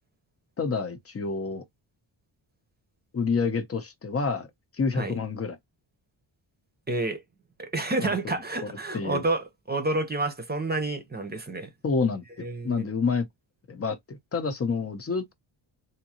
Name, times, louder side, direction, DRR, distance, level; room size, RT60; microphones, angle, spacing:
voice 1, 0.6-1.6 3.1-4.5 4.7-5.6 8.0-8.4 8.6-9.2 11.8-13.3 13.7-15.3, left 5 dB, 30° left, 0.7 m, -28 dB
voice 2, 6.9-7.2 7.6-11.7 12.4-12.9, right 2 dB, 20° right, 0.8 m, -29 dB
3.6 x 2.7 x 2.9 m
wide cardioid pair, 150°, 46 cm